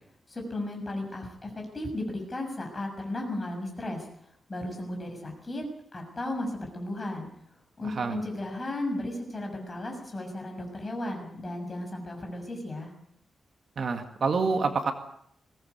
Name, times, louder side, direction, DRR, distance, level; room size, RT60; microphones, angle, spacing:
voice 1, 0.3-4.0 4.5-5.6 5.9-7.3 7.8-12.9, left 1 dB, 25° left, 2 dB, 6.6 m, -35 dB
voice 2, 7.8-8.2 13.8-14.9, right 4 dB, 50° right, 5 dB, 2.1 m, -27 dB
21.5 x 18.0 x 8.2 m, 0.70 s
wide cardioid pair, 160°, 0 cm